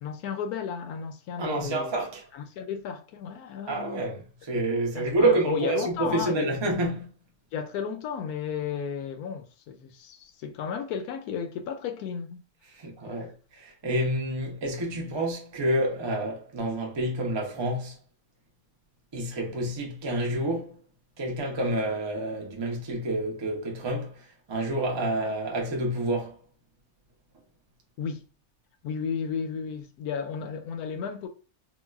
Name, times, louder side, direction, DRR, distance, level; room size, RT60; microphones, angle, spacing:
voice 1, 0.0-1.9 2.3-4.1 4.9-6.5 7.5-12.4 28.0-28.2 28.8-31.3, left 7 dB, 85° left, 1.1 m, -33 dB
voice 2, 1.4-2.2 3.7-7.1 12.8-13.3 13.6-17.9 19.1-20.8 21.2-24.1 24.5-26.3, right 1 dB, 40° right, 0.4 m, -28 dB
3.8 x 2.2 x 2.3 m
omnidirectional pair, 1.5 m